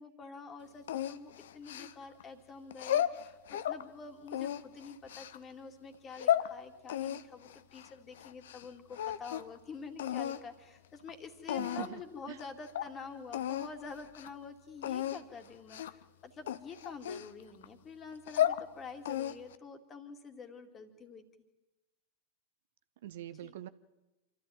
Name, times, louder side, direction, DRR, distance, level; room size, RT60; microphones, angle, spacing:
voice 1, 0.0-21.2 23.4-23.6, left 5 dB, 25° left, 6 dB, 2.5 m, -47 dB
sound 1, 0.9-2.2 2.7-3.8 4.3-5.4 5.9-6.5 6.9-8.7 8.9-9.6 10.0-10.4 11.1-11.2 11.5-12.0 12.4-12.5 12.7-12.9 13.3-13.7 14.0-14.3 14.8-15.2 15.7-16.0 16.5-17.6 18.1-18.6 19.0-19.6, left 11 dB, 60° left, 0.8 m, -34 dB
voice 2, 11.6-12.0 12.3-12.4 23.0-23.7, right 13 dB, 55° right, 14 dB, 0.8 m, -43 dB
26.5 x 13.5 x 9.0 m, 1.0 s
figure-of-eight pair, 90°, 0 cm